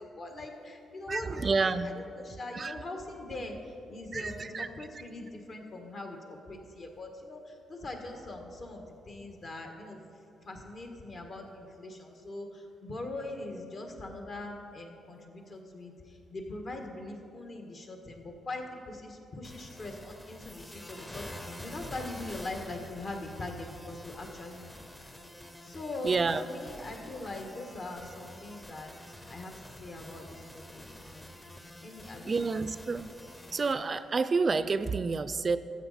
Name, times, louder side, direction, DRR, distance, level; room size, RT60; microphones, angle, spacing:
voice 1, 0.0-1.7 2.2-3.6 3.9-7.4 7.7-10.0 10.5-15.9 16.3-24.9 25.6-28.9 29.3-29.5 29.8-30.4 30.7-31.3 31.8-32.6, left 2 dB, 50° left, 3 dB, 1.5 m, -41 dB
voice 2, 1.1-1.9 2.5-2.8 4.1-5.0 26.0-26.4 32.3-33.1 33.5-35.6, right 4 dB, 40° right, 13 dB, 0.3 m, -29 dB
sound 1, 19.4-33.7, left 1 dB, 20° left, 0.8 m, -47 dB
13.5 x 7.5 x 4.2 m, 2.6 s
cardioid pair, 90°, 0 cm